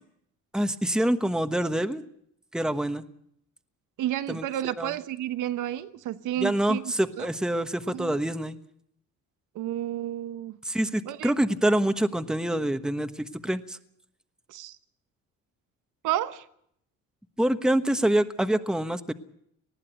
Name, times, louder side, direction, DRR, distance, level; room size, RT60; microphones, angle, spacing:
voice 1, 0.5-2.0 2.5-3.0 4.3-4.9 6.4-8.6 10.6-13.8 17.4-19.1, right 1 dB, ahead, 9 dB, 1.2 m, -26 dB
voice 2, 4.0-6.8 7.2-7.3 7.9-8.1 9.5-10.6 11.0-11.3 14.5-14.8 16.0-16.4, right 12 dB, 90° right, 12 dB, 1.2 m, -31 dB
20.0 x 14.5 x 9.1 m, 0.72 s
cardioid pair, 90°, 30 cm